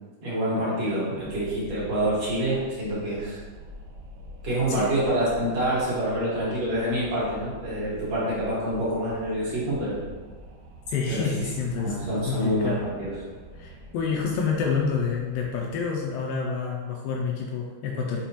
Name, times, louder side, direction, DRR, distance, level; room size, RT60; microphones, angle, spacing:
voice 1, 0.2-3.4 4.4-10.0 11.1-11.5 11.8-13.2, right 1 dB, 45° right, -8 dB, 2.7 m, -27 dB
Wind, 1.2-16.5, equal, 85° right, 2.6 m, -46 dB
voice 2, 10.9-12.0 12.3-12.8 13.6-18.2, left 5 dB, 80° left, 0 dB, 2.1 m, -28 dB
7.2 x 4.8 x 3.0 m, 1.4 s
omnidirectional pair, 4.5 m